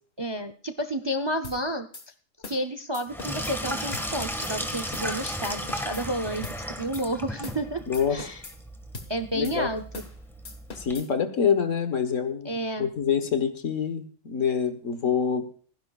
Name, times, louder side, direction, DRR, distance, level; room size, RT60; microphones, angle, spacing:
voice 1, 0.2-1.9 2.5-6.5 6.8-7.8 8.1-8.4 9.1-10.0 12.4-12.9, right 1 dB, 30° right, 9 dB, 0.6 m, -31 dB
sound 1, 1.4-1.6 1.9-2.1 2.4-2.6 2.9-3.6 3.9-4.1 4.4-4.6 4.9-5.1 5.4-6.1 6.4-6.6 6.9-7.1 7.4-7.6 7.9-8.6 8.9-9.1 9.4-9.6 9.9-10.2 10.5-11.1, left 4 dB, 50° left, 1.7 m, -41 dB
Sink (filling or washing), 3.1-10.9, equal, ahead, 1.5 m, -35 dB
voice 2, 7.9-8.2 9.3-9.7 10.8-12.5 12.8-15.5, left 7 dB, 75° left, 9 dB, 1.7 m, -26 dB
27.5 x 10.5 x 2.4 m, 0.43 s
omnidirectional pair, 1.3 m